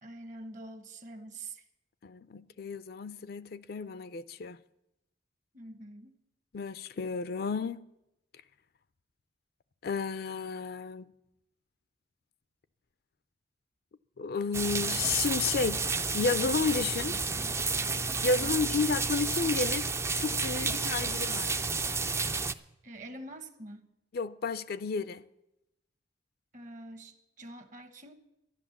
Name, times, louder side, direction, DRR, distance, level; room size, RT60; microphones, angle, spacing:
voice 1, 0.0-1.6 5.5-6.2 18.3-18.6 22.8-23.9 26.5-28.1, right 2 dB, 45° right, 1.1 m, -45 dB
voice 2, 2.0-4.6 6.5-7.8 9.8-11.1 14.2-15.8 16.1-17.2 18.2-19.9 20.2-21.6 24.1-25.2, left 4 dB, 60° left, 0.4 m, -32 dB
sound 1, 14.5-22.5, right 4 dB, 15° right, 0.4 m, -31 dB
12.5 x 11.0 x 7.1 m
head